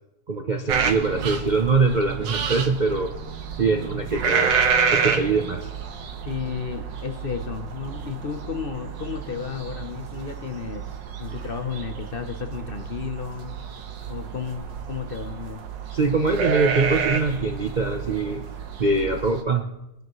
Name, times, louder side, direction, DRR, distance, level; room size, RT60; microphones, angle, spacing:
voice 1, 0.3-3.1 3.6-4.6 4.9-5.7 15.9-18.5 18.8-19.7, right 3 dB, 65° right, 4 dB, 0.4 m, -23 dB
sound 1, 0.7-19.4, right 6 dB, 80° right, 1.7 m, -29 dB
voice 2, 6.3-10.9 11.2-13.6 14.1-15.6, left 7 dB, 50° left, 7 dB, 0.6 m, -33 dB
23.0 x 10.0 x 3.1 m, 0.91 s
omnidirectional pair, 1.9 m